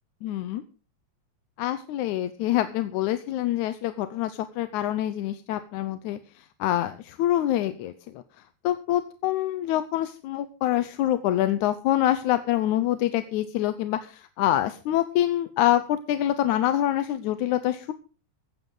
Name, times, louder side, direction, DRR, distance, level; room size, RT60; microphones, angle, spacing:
voice 1, 0.2-0.6 1.6-8.2 8.6-17.9, left 13 dB, 85° left, 11 dB, 2.2 m, -26 dB
16.5 x 14.5 x 3.9 m, 0.36 s
omnidirectional pair, 3.3 m